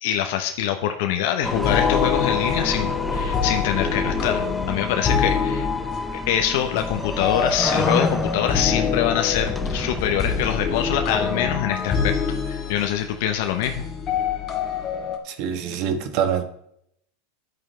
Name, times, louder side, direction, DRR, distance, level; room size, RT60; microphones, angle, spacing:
voice 1, 0.0-5.7 6.3-12.1 12.5-13.8, left 10 dB, 65° left, 0.9 m, -24 dB
sound 1, 1.4-11.6, left 1 dB, 5° left, 0.6 m, -29 dB
sound 2, 1.6-15.2, left 6 dB, 35° left, 1.9 m, -26 dB
voice 2, 15.2-16.4, right 8 dB, 55° right, 1.4 m, -25 dB
9.9 x 9.1 x 3.4 m
supercardioid pair, 120°, 0 cm